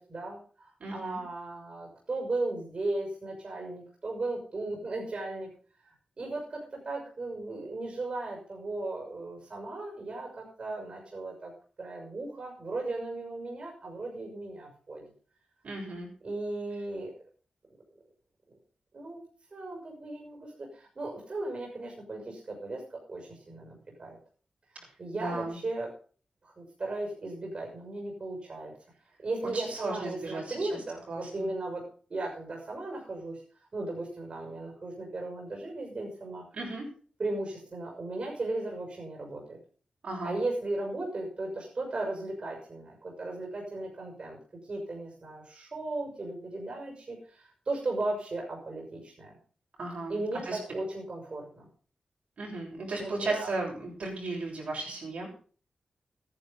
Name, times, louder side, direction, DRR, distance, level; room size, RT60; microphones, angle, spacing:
voice 1, 0.0-5.5 6.2-11.5 11.8-15.0 16.2-17.2 18.5-18.6 18.9-19.2 19.5-24.2 25.0-25.9 26.4-28.7 29.2-33.4 33.7-36.4 37.2-39.6 40.2-44.4 44.7-49.3 50.1-51.7 53.0-53.5, right 2 dB, 45° right, 0 dB, 6.2 m, -36 dB
voice 2, 0.8-1.2 15.6-16.1 25.1-25.6 29.5-30.7 31.1-31.5 36.5-36.9 40.0-40.4 49.8-50.6 52.4-55.3, right 2 dB, 65° right, -2 dB, 7.4 m, -35 dB
14.0 x 11.0 x 5.4 m, 0.41 s
wide cardioid pair, 85°, 2 cm